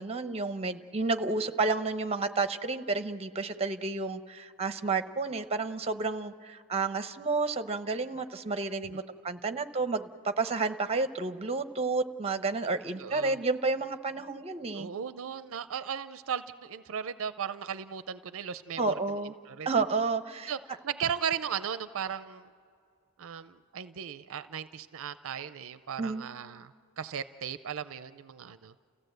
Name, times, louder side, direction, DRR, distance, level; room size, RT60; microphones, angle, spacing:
voice 1, 0.0-14.9 18.8-19.3 19.7-20.5 26.0-26.3, right 3 dB, 30° right, 10 dB, 0.8 m, -31 dB
voice 2, 13.0-13.4 14.7-18.9 19.2-19.7 20.5-20.6 20.8-22.4 23.2-26.7 27.0-28.7, right 8 dB, 60° right, 13 dB, 0.5 m, -36 dB
30.0 x 15.5 x 7.9 m, 2.3 s
head